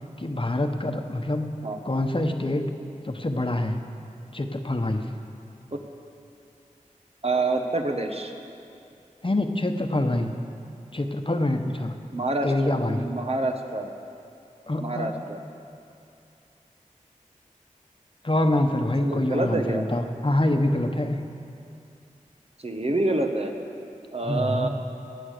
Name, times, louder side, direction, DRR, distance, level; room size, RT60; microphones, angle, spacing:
voice 1, 0.2-1.5 1.8-2.7 3.0-3.8 4.3-5.1 9.2-10.3 10.9-12.0 12.4-13.0 14.7-15.1 18.2-21.2 24.2-24.7, left 1 dB, 40° left, 5 dB, 1.2 m, -25 dB
voice 2, 7.2-8.3 12.1-13.9 14.8-15.4 19.0-19.9 22.6-23.5 24.1-24.7, right 2 dB, 45° right, 3 dB, 1.5 m, -27 dB
22.0 x 8.5 x 6.8 m, 2.6 s
wide cardioid pair, 45°, 14 cm